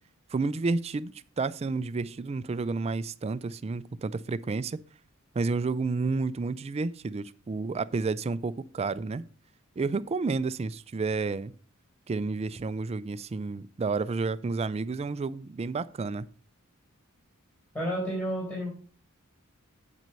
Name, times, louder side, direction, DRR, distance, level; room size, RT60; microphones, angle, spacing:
voice 1, 0.3-4.8 5.3-9.2 9.8-11.5 12.1-16.3, right 4 dB, 30° right, 0.3 m, -30 dB
voice 2, 17.7-18.7, equal, 10° left, 4.1 m, -30 dB
8.6 x 6.1 x 5.4 m
head